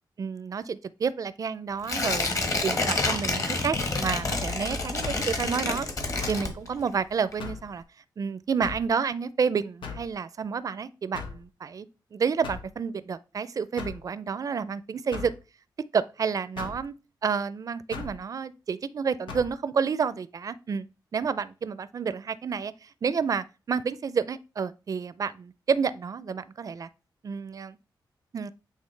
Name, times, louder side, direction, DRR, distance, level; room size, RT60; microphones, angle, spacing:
voice 1, 0.2-2.4 2.6-5.9 6.3-7.8 8.2-11.9 12.1-15.3 15.9-16.9 17.2-20.8 21.1-26.9 27.2-27.8 28.3-28.5, right 6 dB, 45° right, 0.4 m, -30 dB
Tearing, 1.8-7.0 7.3-7.4, left 3 dB, 40° left, 1.3 m, -28 dB
sound 1, 5.0-5.3 6.2-6.5 7.4-7.7 8.6-8.9 9.8-10.1 11.1-11.4 12.4-12.7 13.8-14.0 15.1-15.4 16.6-16.8 17.9-18.2 19.3-19.5, left 5 dB, 85° left, 1.1 m, -38 dB
8.3 x 3.5 x 3.3 m
wide cardioid pair, 105°, 8 cm